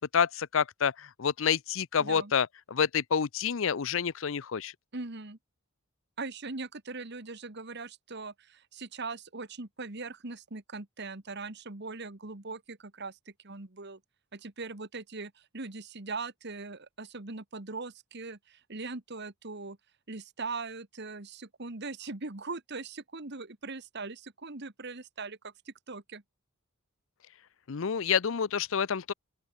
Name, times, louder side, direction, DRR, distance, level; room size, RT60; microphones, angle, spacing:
voice 1, 0.1-4.7 27.7-29.1, left 7 dB, 65° left, 0.6 m, -28 dB
voice 2, 2.0-2.3 4.9-5.4 6.2-14.0 14.3-19.8 20.1-26.2, right 3 dB, 55° right, 1.7 m, -40 dB
open air
head